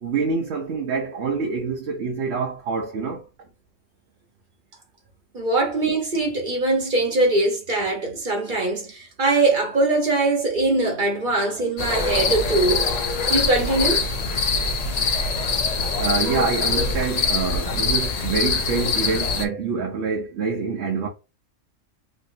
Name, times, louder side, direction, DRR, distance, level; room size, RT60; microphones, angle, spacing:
voice 1, 0.0-3.2 16.0-21.1, right 5 dB, 60° right, 0.9 m, -26 dB
voice 2, 5.3-14.0, right 2 dB, 40° right, 1.1 m, -22 dB
sound 1, 11.8-19.4, left 4 dB, 55° left, 0.4 m, -23 dB
3.2 x 2.7 x 2.7 m
omnidirectional pair, 1.4 m